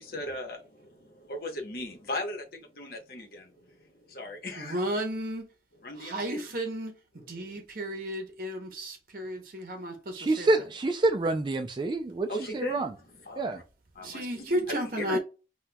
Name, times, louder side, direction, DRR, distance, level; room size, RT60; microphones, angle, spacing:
voice 1, 0.0-4.9 5.8-6.4 7.3-7.6 12.3-12.9 13.3-13.6 14.0-14.6 15.0-15.2, left 1 dB, 55° left, 0.9 m, -38 dB
voice 2, 4.6-5.5 6.0-10.5 14.0-15.2, equal, 50° right, 0.8 m, -33 dB
voice 3, 10.2-12.9 13.4-13.6, right 2 dB, 25° right, 0.3 m, -27 dB
4.2 x 2.2 x 2.2 m
head